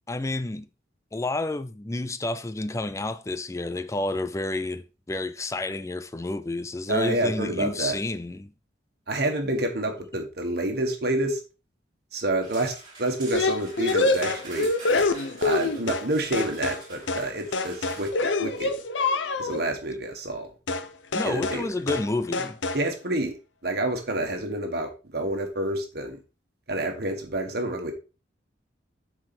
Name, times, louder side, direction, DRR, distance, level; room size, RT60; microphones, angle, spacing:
voice 1, 0.1-0.7 1.1-8.5 21.1-22.6, left 2 dB, 15° left, 0.4 m, -30 dB
voice 2, 6.9-8.0 9.1-11.4 12.1-14.7 15.4-18.8 19.4-20.5 21.2-21.7 22.7-23.3 23.6-26.2 26.7-27.9, right 1 dB, 55° right, 1.6 m, -28 dB
sound 1, 12.4-18.1, right 2 dB, 25° right, 3.3 m, -45 dB
sound 2, 13.3-16.1 16.3-16.8 17.1-17.3 17.5-19.6 20.7-20.9 21.1-21.6 21.9-22.1 22.3-22.8, left 3 dB, 80° left, 0.8 m, -26 dB
7.5 x 4.7 x 4.2 m
head